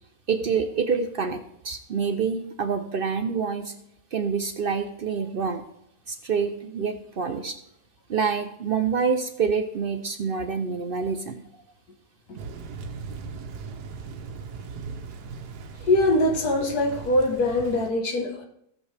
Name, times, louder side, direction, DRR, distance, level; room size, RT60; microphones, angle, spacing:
voice 1, 0.3-3.7 4.1-5.6 6.1-7.6 8.1-11.4, right 5 dB, 60° right, 8 dB, 0.6 m, -27 dB
Thunder / Rain, 12.4-17.9, right 5 dB, 90° right, 1.4 m, -38 dB
voice 2, 15.8-18.4, left 1 dB, 75° left, 2 dB, 1.8 m, -22 dB
17.0 x 6.9 x 3.3 m, 0.76 s
omnidirectional pair, 1.7 m